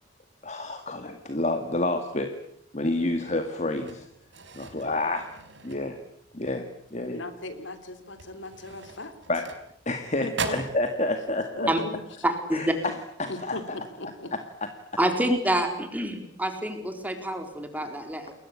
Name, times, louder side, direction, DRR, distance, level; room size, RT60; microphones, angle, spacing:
voice 1, 0.4-2.4 2.7-4.1 4.5-5.3 5.6-6.0 6.3-7.3 9.3-9.5 9.9-11.7 12.5-13.6 14.3-14.7, left 2 dB, 35° left, 7 dB, 2.0 m, -29 dB
sound 1, 3.7-6.3 6.7-7.0 7.3-7.5 8.1-10.0 10.3-10.8, right 4 dB, 70° right, 4.1 m, -38 dB
voice 2, 7.1-9.1 10.2-10.5 11.5-11.9 13.3-13.6 14.0-14.3, left 2 dB, 75° left, 10 dB, 3.2 m, -37 dB
voice 3, 12.2-12.7 15.0-18.3, right 1 dB, 10° right, 6 dB, 4.1 m, -27 dB
29.5 x 21.5 x 8.6 m, 0.73 s
head